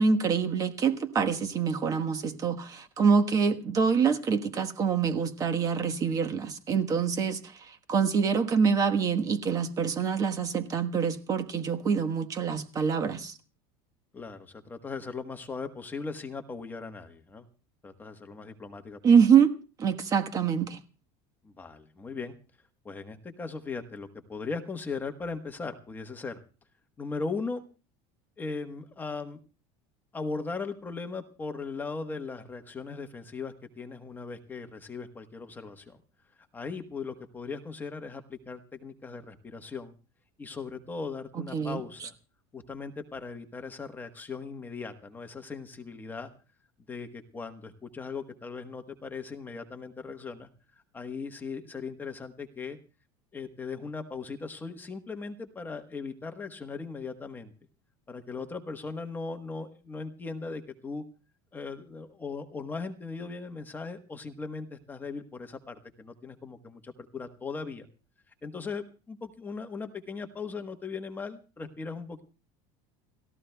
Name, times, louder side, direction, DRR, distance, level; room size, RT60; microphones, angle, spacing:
voice 1, 0.0-13.4 19.0-19.5 19.8-20.8 41.5-42.1, right 6 dB, 25° right, 9 dB, 1.2 m, -25 dB
voice 2, 14.1-17.4 17.8-19.0 21.4-22.3 22.8-26.4 27.0-27.6 28.4-29.4 30.1-36.0 36.5-39.9 40.4-42.1 42.5-46.3 46.9-50.5 50.9-52.8 53.3-57.5 58.1-61.0 61.5-67.9 68.4-72.2, left 4 dB, 15° left, 7 dB, 1.2 m, -38 dB
30.0 x 14.5 x 2.3 m, 0.35 s
cardioid pair, 160°, 13 cm